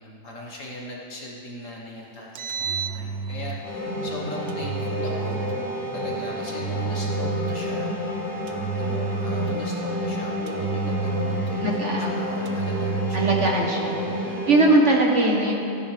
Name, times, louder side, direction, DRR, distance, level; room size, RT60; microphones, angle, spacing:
voice 1, 0.0-5.6 5.9-7.9 8.7-14.5, left 1 dB, 50° left, -3 dB, 1.5 m, -39 dB
Engine, 2.2-3.7 4.5-5.7 6.5-7.8 8.5-9.8 10.5-11.8 12.5-13.7, right 5 dB, 85° right, 1.5 m, -30 dB
sound 1, 3.6-14.7, left 1 dB, 85° left, 2.6 m, -29 dB
voice 2, 11.6-12.2 13.1-15.5, right 2 dB, 50° right, -1 dB, 1.2 m, -21 dB
15.5 x 10.5 x 3.3 m, 2.8 s
omnidirectional pair, 1.9 m